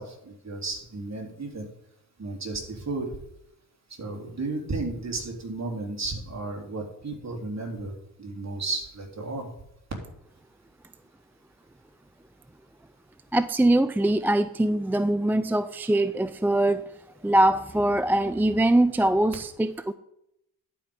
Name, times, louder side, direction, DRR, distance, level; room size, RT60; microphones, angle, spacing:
voice 1, 0.0-1.7 2.2-3.1 4.0-7.9 8.2-9.5, right 3 dB, 35° right, 1 dB, 3.4 m, -33 dB
voice 2, 13.3-16.9 17.2-19.9, right 1 dB, 5° right, 13 dB, 0.3 m, -22 dB
11.0 x 5.2 x 6.4 m, 0.79 s
hypercardioid pair, 50°, 46 cm